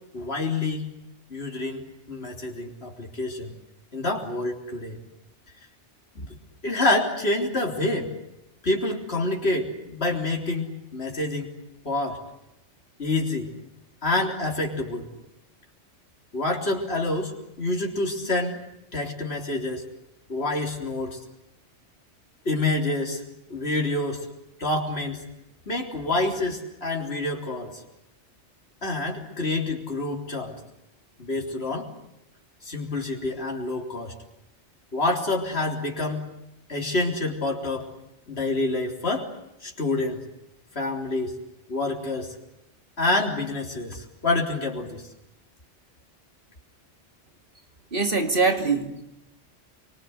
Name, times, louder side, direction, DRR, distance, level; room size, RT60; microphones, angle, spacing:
voice 1, 0.1-0.9 1.3-3.5 3.9-5.0 6.2-6.3 6.6-8.1 8.6-11.5 11.8-12.2 13.0-13.5 14.0-15.1 16.3-18.6 18.9-19.8 20.3-21.2 22.5-23.2 23.5-24.3 24.6-25.2 25.7-27.8 28.8-30.6 31.2-31.9 32.6-34.1 34.9-36.3 36.7-37.9 38.3-39.3 39.6-40.2 40.8-41.3 41.7-42.3 43.0-45.0, left 2 dB, 60° left, 3.9 m, -27 dB
voice 2, 47.9-49.0, right 4 dB, 50° right, 2.7 m, -23 dB
27.5 x 25.0 x 8.0 m
omnidirectional pair, 1.2 m